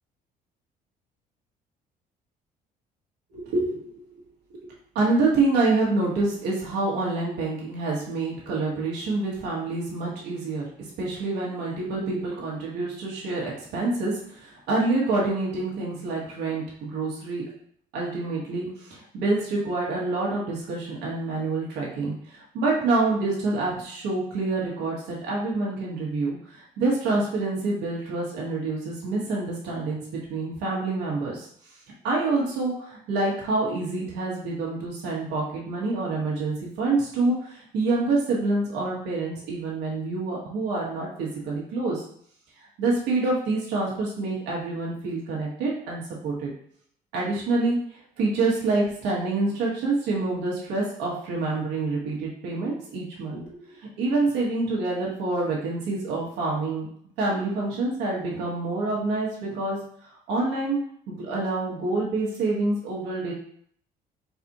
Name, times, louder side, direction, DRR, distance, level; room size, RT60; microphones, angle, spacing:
voice 1, 3.3-3.9 4.5-4.6 4.9-10.7 11.0-17.5 17.9-31.5 32.0-42.0 42.8-46.5 47.1-56.9 57.2-59.8 60.3-60.8 61.1-63.3, right 3 dB, 90° right, -4 dB, 1.3 m, -27 dB
4.1 x 2.5 x 4.1 m, 0.63 s
cardioid pair, 110°, 17 cm